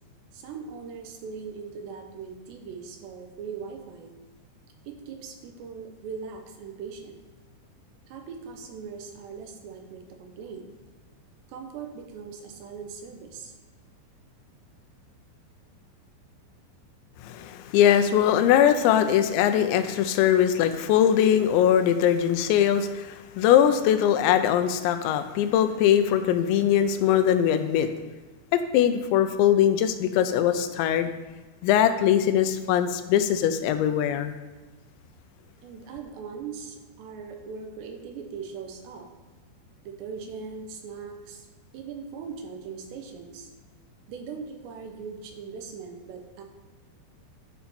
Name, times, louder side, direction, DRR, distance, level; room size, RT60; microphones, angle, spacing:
voice 1, 0.3-4.1 4.9-7.2 8.1-10.7 11.5-13.5 19.0-19.1 35.6-39.1 39.8-41.5 41.7-43.5 44.1-46.4, right 5 dB, 80° right, 3 dB, 3.1 m, -40 dB
voice 2, 17.2-27.9 28.5-31.1 31.6-34.3, left 10 dB, 85° left, 9 dB, 2.9 m, -21 dB
12.0 x 5.7 x 4.3 m, 1.2 s
omnidirectional pair, 5.1 m